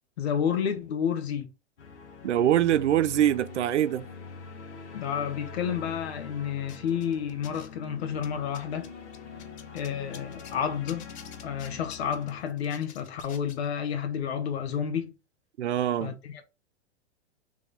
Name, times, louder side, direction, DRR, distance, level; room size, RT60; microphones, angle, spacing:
voice 1, 0.2-1.5 4.9-8.9 9.7-11.1 11.4-15.1 16.0-16.5, left 8 dB, 65° left, 1.1 m, -30 dB
sound 1, 1.8-12.4, left 5 dB, 85° left, 1.3 m, -44 dB
voice 2, 2.2-4.1 15.6-16.1, right 11 dB, 85° right, 0.5 m, -24 dB
sound 2, 6.7-7.9 8.2-10.6 10.9-13.6, left 9 dB, 25° left, 0.5 m, -49 dB
3.4 x 3.4 x 3.9 m
hypercardioid pair, 115°, 34 cm